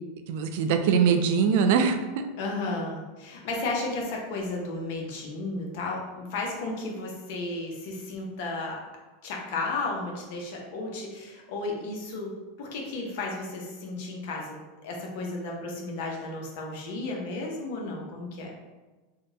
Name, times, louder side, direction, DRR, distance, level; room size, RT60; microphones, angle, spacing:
voice 1, 0.3-2.3, right 6 dB, 65° right, 7 dB, 0.3 m, -23 dB
voice 2, 2.4-8.8 9.2-12.3 12.6-14.6 14.8-18.5, left 2 dB, 65° left, 0 dB, 0.7 m, -33 dB
3.7 x 2.2 x 2.7 m, 1.2 s
hypercardioid pair, 105°, 0 cm